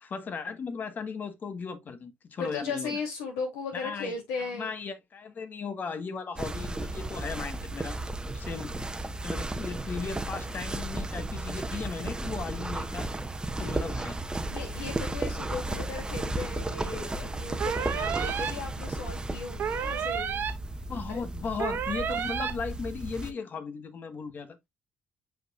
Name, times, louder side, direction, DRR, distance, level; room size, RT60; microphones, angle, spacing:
voice 1, 0.0-3.0 3.7-8.0 8.3-8.7 9.2-13.1 13.6-14.2 20.9-24.7, left 5 dB, 50° left, 1.4 m, -37 dB
voice 2, 2.4-4.7 14.5-20.4 21.1-21.2, left 4 dB, 90° left, 2.8 m, -36 dB
sound 1, 6.4-23.3, right 2 dB, 20° right, 1.0 m, -34 dB
sound 2, 17.6-18.5 19.6-20.5 21.6-22.5, right 8 dB, 60° right, 1.3 m, -31 dB
7.7 x 5.2 x 2.4 m
supercardioid pair, 55°, 4 cm